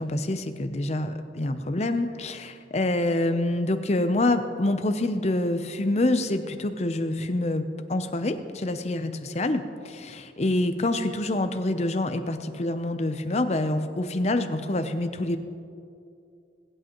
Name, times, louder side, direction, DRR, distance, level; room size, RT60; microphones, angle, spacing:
voice 1, 0.0-7.6 7.9-15.4, left 2 dB, 35° left, 9 dB, 0.6 m, -26 dB
21.0 x 8.7 x 3.0 m, 2.5 s
head